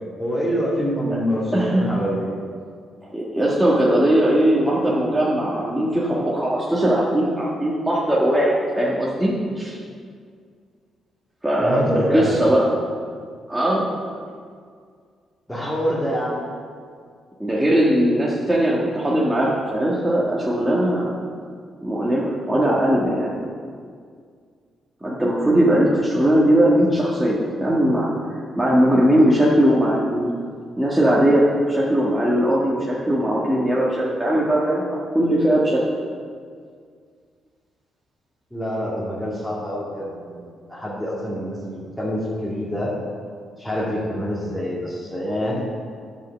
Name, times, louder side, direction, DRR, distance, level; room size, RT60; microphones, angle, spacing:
voice 1, 0.2-2.3 11.6-12.4 15.5-16.4 38.5-40.4 40.7-42.9 43.6-45.6, equal, 5° left, -8 dB, 2.5 m, -26 dB
voice 2, 1.5-1.8 3.1-9.8 11.4-12.7 13.5-13.9 17.4-21.1 21.8-23.3 25.0-28.1 28.6-30.3 30.8-35.8, right 1 dB, 10° right, -6 dB, 1.7 m, -19 dB
10.5 x 5.7 x 6.7 m, 2.1 s
cardioid pair, 95°, 0 cm